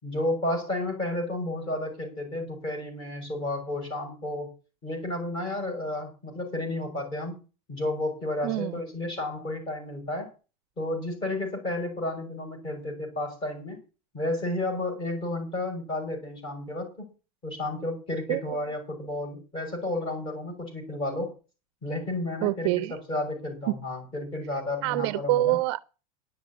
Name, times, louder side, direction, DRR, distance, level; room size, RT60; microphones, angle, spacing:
voice 1, 0.0-4.5 4.8-7.4 7.7-10.3 10.8-13.8 14.1-17.1 17.4-21.3 21.8-22.7 23.1-25.6, left 1 dB, 25° left, 5.8 m, -32 dB
voice 2, 8.4-8.8 18.3-18.6 22.4-23.0 23.7-23.8 24.8-25.8, right 17 dB, 45° right, 0.5 m, -26 dB
11.0 x 7.2 x 8.4 m
supercardioid pair, 175°, 19 cm